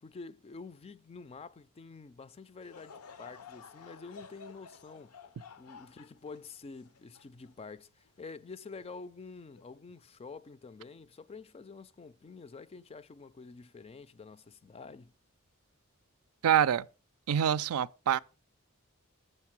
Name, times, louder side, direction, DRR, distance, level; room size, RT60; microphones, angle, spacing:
voice 1, 0.0-5.2 5.6-15.1, left 4 dB, 25° left, 0.4 m, -48 dB
Laughter / Crowd, 2.6-8.1 8.6-8.7 9.5-9.8, left 5 dB, 80° left, 0.6 m, -52 dB
voice 2, 16.4-16.9 17.3-18.2, right 9 dB, 85° right, 0.4 m, -26 dB
8.1 x 6.5 x 6.0 m
head